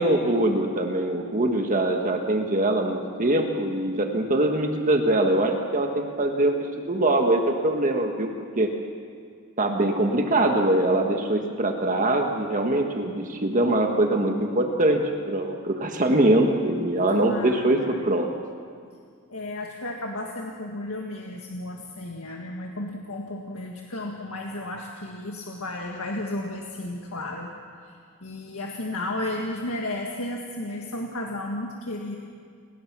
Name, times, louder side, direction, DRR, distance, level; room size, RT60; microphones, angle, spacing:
voice 1, 0.0-6.5 6.9-8.3 8.6-8.7 9.6-15.0 15.3-17.8 18.0-18.3, right 1 dB, 35° right, 3 dB, 1.5 m, -23 dB
voice 2, 17.1-18.0 19.3-27.5 27.8-32.2, left 1 dB, 80° left, 0 dB, 1.8 m, -33 dB
29.5 x 19.5 x 6.2 m, 2.2 s
head